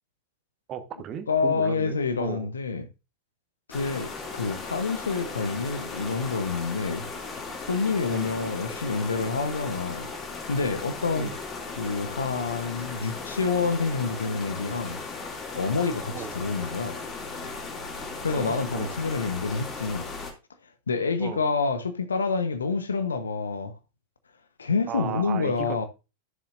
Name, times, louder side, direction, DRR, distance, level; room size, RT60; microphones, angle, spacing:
voice 1, 0.7-2.5 8.1-8.3 11.2-11.4 16.1-16.3 18.3-18.9 21.2-21.4 24.9-25.9, right 8 dB, 30° right, 1.2 m, -36 dB
voice 2, 1.3-2.9 3.7-7.1 7.6-10.1 10.5-11.3 11.7-15.0 15.5-17.0 18.2-20.0 20.9-23.7 24.6-25.9, left 4 dB, 70° left, 1.0 m, -28 dB
sound 1, 3.7-20.3, left 4 dB, 25° left, 2.5 m, -37 dB
12.5 x 7.1 x 2.5 m
figure-of-eight pair, 90°, 0 cm